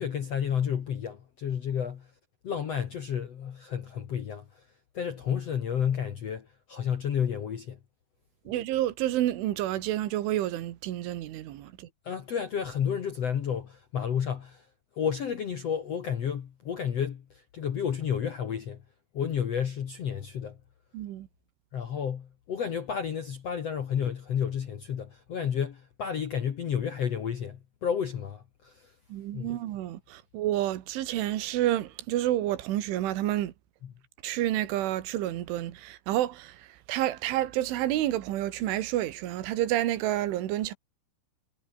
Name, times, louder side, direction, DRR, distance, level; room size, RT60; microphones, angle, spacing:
voice 1, 0.0-2.1 2.4-4.7 4.9-7.8 12.0-14.7 14.9-18.8 19.1-20.6 21.7-28.9 29.3-29.6 33.8-33.9, left 8 dB, 65° left, 1.6 m, -31 dB
voice 2, 8.5-11.9 20.9-21.3 29.1-33.5 34.2-40.7, right 13 dB, 85° right, 4.2 m, -29 dB
omnidirectional pair, 5.4 m